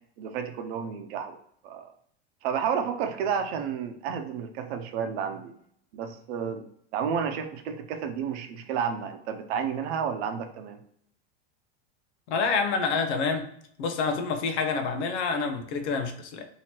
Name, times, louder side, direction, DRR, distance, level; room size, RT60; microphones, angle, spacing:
voice 1, 0.2-1.4 1.6-1.9 2.4-5.5 5.9-6.6 6.9-10.8, right 7 dB, 70° right, 6 dB, 0.7 m, -31 dB
voice 2, 12.3-13.5 13.8-16.5, left 4 dB, 80° left, 6 dB, 0.8 m, -27 dB
2.9 x 2.8 x 4.3 m, 0.66 s
supercardioid pair, 105°, 33 cm